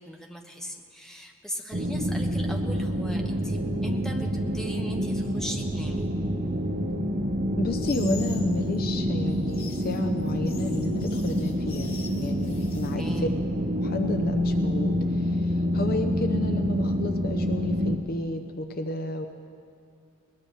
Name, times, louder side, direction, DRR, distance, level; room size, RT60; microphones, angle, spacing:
voice 1, 0.0-6.1 13.0-13.3, equal, ahead, 1 dB, 1.1 m, -39 dB
sound 1, 1.7-18.0, equal, 40° right, 0.9 m, -27 dB
voice 2, 7.6-13.3 13.8-19.3, left 2 dB, 45° left, 6 dB, 0.7 m, -32 dB
sound 2, 7.8-8.5 9.3-13.0, left 5 dB, 70° left, 1.9 m, -44 dB
21.0 x 20.0 x 3.3 m, 2.5 s
head